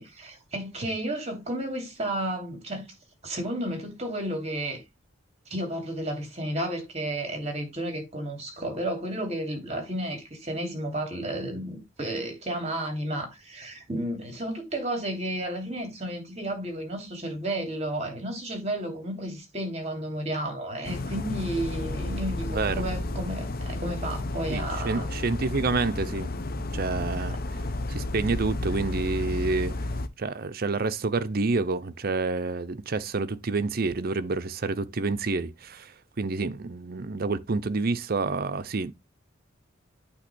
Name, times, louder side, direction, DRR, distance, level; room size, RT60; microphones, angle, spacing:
voice 1, 0.0-2.9 3.2-4.8 5.5-25.1 27.3-27.4, right 1 dB, 35° right, 3.0 m, -32 dB
sound 1, 20.8-30.1, left 2 dB, 50° left, 0.8 m, -32 dB
voice 2, 22.5-22.8 24.5-26.4 26.7-27.4 27.9-29.8 30.2-38.9, right 3 dB, 50° right, 0.7 m, -28 dB
8.7 x 3.0 x 6.2 m
head